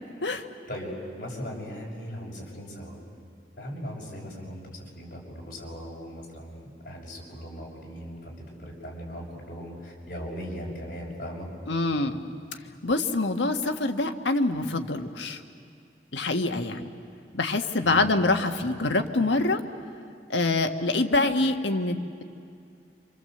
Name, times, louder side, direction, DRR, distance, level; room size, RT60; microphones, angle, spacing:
voice 1, 0.7-3.0 3.6-11.5 17.8-18.1, equal, 50° left, -3 dB, 6.4 m, -38 dB
voice 2, 11.7-12.2 12.8-15.4 16.1-16.8 17.3-19.6 20.3-22.2, left 2 dB, 90° left, 5 dB, 1.6 m, -25 dB
28.0 x 26.5 x 7.9 m, 2.4 s
head